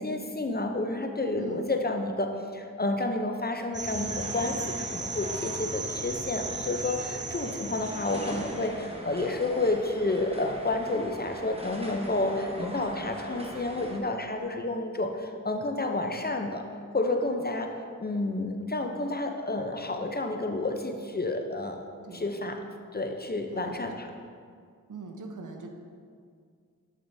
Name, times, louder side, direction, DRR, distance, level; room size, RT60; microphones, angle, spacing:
voice 1, 0.0-16.6 16.9-17.7 18.0-21.8 22.1-22.6 22.9-24.1, left 2 dB, 30° left, 4 dB, 0.6 m, -30 dB
sound 1, 3.7-8.7, right 3 dB, 35° right, 0.7 m, -36 dB
sound 2, 3.8-14.0, equal, 15° right, 1.1 m, -41 dB
voice 2, 24.9-25.7, right 2 dB, 65° right, 3 dB, 0.8 m, -41 dB
8.0 x 6.3 x 2.7 m, 2.1 s
cardioid pair, 45°, 34 cm